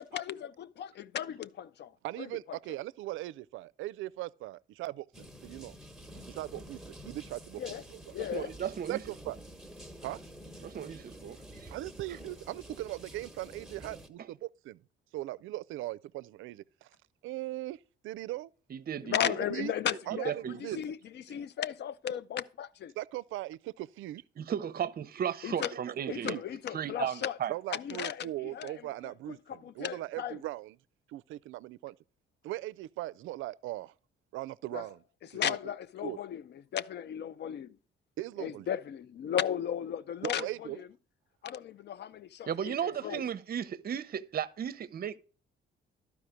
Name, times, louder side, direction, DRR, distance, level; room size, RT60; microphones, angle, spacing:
voice 1, 0.0-1.9 2.2-2.3 7.6-7.8 8.1-8.5 19.0-22.9 25.4-25.7 26.1-27.4 27.7-30.4 34.7-34.9 35.3-37.8 38.4-40.9 41.4-43.2, left 9 dB, 60° left, 0.6 m, -36 dB
voice 2, 2.0-5.7 6.3-7.6 7.9-8.1 8.9-9.4 10.0-10.2 11.7-14.8 15.1-16.9 17.2-18.5 19.5-19.7 20.1-20.8 23.0-24.2 26.2-26.4 27.5-30.8 31.1-31.9 32.4-33.9 34.3-35.0 35.4-35.6 36.0-36.2 38.2-38.7 40.2-40.8, right 16 dB, 80° right, 0.4 m, -39 dB
sound 1, 5.1-14.1, right 1 dB, ahead, 1.2 m, -49 dB
voice 3, 8.3-9.0 10.6-11.7 18.7-19.4 20.2-20.6 24.4-26.4 26.7-27.5 42.5-45.2, right 9 dB, 50° right, 0.7 m, -35 dB
12.0 x 4.9 x 5.0 m
cardioid pair, 90°, 20 cm